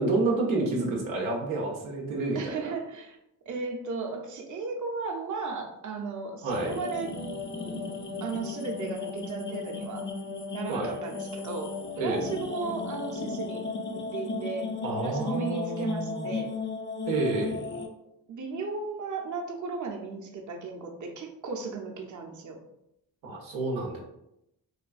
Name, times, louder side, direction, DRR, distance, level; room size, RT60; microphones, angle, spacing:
voice 1, 0.0-2.7 6.4-6.7 10.7-11.0 12.0-12.3 14.8-16.3 17.1-17.7 23.2-24.0, right 2 dB, 80° right, -1 dB, 0.7 m, -29 dB
voice 2, 2.3-3.2 3.5-7.1 7.6-7.8 8.2-10.1 10.5-14.7 15.0-16.6 18.3-22.6, right 4 dB, 40° right, 1 dB, 0.7 m, -35 dB
sound 1, 6.5-17.9, left 4 dB, 25° left, 0.5 m, -35 dB
3.2 x 2.2 x 2.4 m, 0.83 s
supercardioid pair, 45°, 46 cm